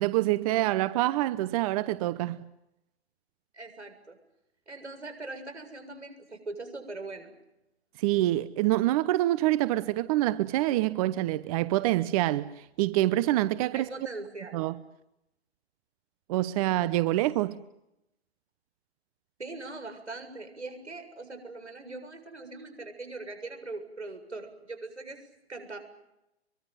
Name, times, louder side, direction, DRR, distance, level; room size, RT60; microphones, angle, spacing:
voice 1, 0.0-2.4 8.0-13.9 14.5-14.7 16.3-17.6, right 16 dB, 35° right, 0.9 m, -26 dB
voice 2, 3.5-4.2 4.7-7.3 13.7-14.6 19.4-25.8, right 3 dB, 90° right, 7.7 m, -41 dB
25.0 x 23.5 x 9.3 m
figure-of-eight pair, 125°, 33 cm